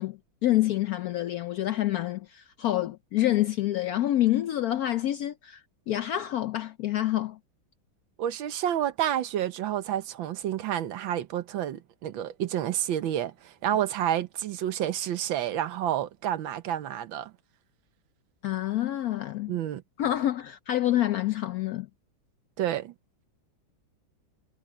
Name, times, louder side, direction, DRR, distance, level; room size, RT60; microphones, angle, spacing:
voice 1, 0.0-5.6 5.9-7.4 18.4-19.6 20.0-21.9, left 13 dB, 80° left, 0.8 m, -27 dB
voice 2, 8.2-17.3 19.5-19.8 22.6-22.9, right 11 dB, 80° right, 1.7 m, -29 dB
omnidirectional pair, 2.1 m